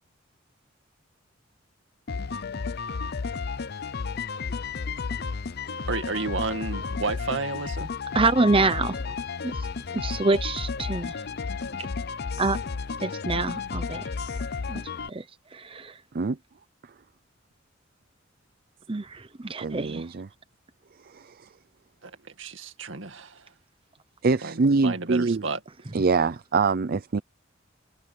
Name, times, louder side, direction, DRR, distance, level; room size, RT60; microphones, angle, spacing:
sound 1, 2.1-15.1, left 5 dB, 55° left, 0.7 m, -32 dB
voice 1, 5.9-7.9 22.0-23.5 24.4-25.6, right 3 dB, 80° right, 2.2 m, -32 dB
voice 2, 8.1-9.1 9.4-9.5 9.9-11.1 12.4-12.6 13.0-14.1 14.7-14.8 15.1-15.2 15.5-15.9 18.9-20.0, right 3 dB, 30° right, 0.9 m, -26 dB
voice 3, 19.6-20.3 21.0-21.5 24.2-25.4 25.9-27.2, right 4 dB, 50° right, 0.5 m, -24 dB
head